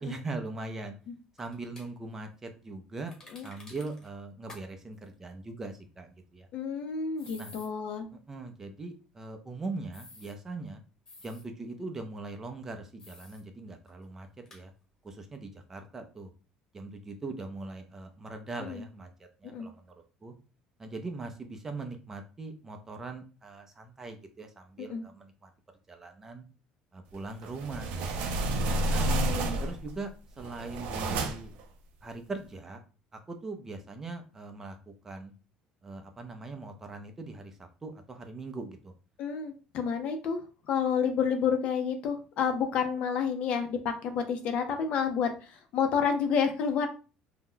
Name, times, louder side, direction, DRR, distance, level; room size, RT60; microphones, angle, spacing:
voice 1, 0.0-1.0 1.4-3.1 3.4-6.5 7.4-7.5 8.3-10.8 11.2-14.7 15.0-16.3 16.7-19.1 19.4-19.8 20.2-20.3 20.8-25.5 25.9-26.4 26.9-28.3 28.9-29.1 29.6-30.1 30.4-31.5 32.0-32.8 33.3-35.3 35.8-38.9, right 3 dB, 20° right, 5 dB, 0.5 m, -41 dB
sound 1, 1.4-1.9 3.1-4.1 4.5-4.6 4.9-5.0 7.2-7.7 9.9-10.3 11.1-11.4 13.0-13.4 13.9-14.0 14.5-14.6, left 2 dB, 25° left, 0.9 m, -51 dB
voice 2, 6.5-8.1 18.6-18.8 19.4-19.7 24.8-25.0 29.1-29.6 39.2-40.4 40.7-46.9, left 6 dB, 55° left, 6 dB, 0.6 m, -30 dB
sound 2, 27.4-29.9 30.4-31.6, right 2 dB, 70° right, 0.5 m, -30 dB
2.8 x 2.1 x 3.7 m, 0.34 s
cardioid pair, 140°, 2 cm